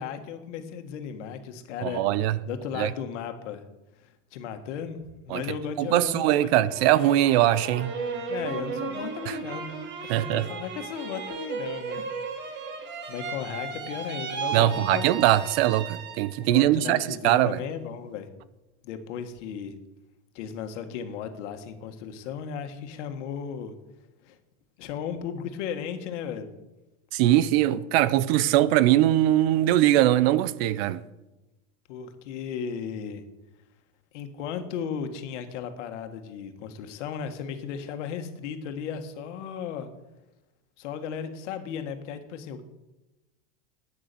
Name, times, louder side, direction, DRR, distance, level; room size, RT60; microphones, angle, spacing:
voice 1, 0.0-2.0 2.4-3.6 4.0-6.5 8.3-9.8 10.0-12.1 13.1-15.1 16.4-18.3 18.8-19.8 20.3-23.7 24.2-24.4 24.8-26.5 31.9-33.2 34.1-39.9 40.8-42.6, left 7 dB, 80° left, 1.8 m, -35 dB
voice 2, 1.8-2.4 2.8-2.9 5.3-5.4 5.8-7.9 9.3-9.4 10.1-10.4 14.5-17.6 27.1-31.0, right 14 dB, 60° right, 0.7 m, -21 dB
sound 1, 6.7-16.5 16.9-17.6, right 5 dB, 30° right, 1.8 m, -35 dB
11.5 x 9.7 x 6.9 m
supercardioid pair, 165°, 35 cm